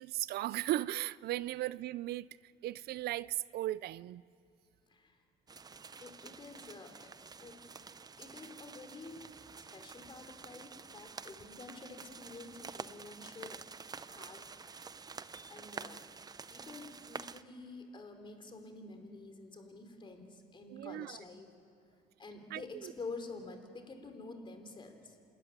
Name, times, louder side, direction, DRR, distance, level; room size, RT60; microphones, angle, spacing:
voice 1, 0.0-2.4 2.6-4.2 20.7-21.2 22.5-22.9, right 15 dB, 70° right, 0.4 m, -37 dB
voice 2, 4.9-5.2 6.0-7.1 7.4-7.6 8.2-9.3 9.7-13.6 14.1-14.5 15.5-16.1 16.5-21.5 22.2-25.2, left 3 dB, 30° left, 3.5 m, -48 dB
sound 1, 5.5-17.4, right 5 dB, 25° right, 0.6 m, -49 dB
27.5 x 13.5 x 9.8 m
cardioid pair, 110°, 17 cm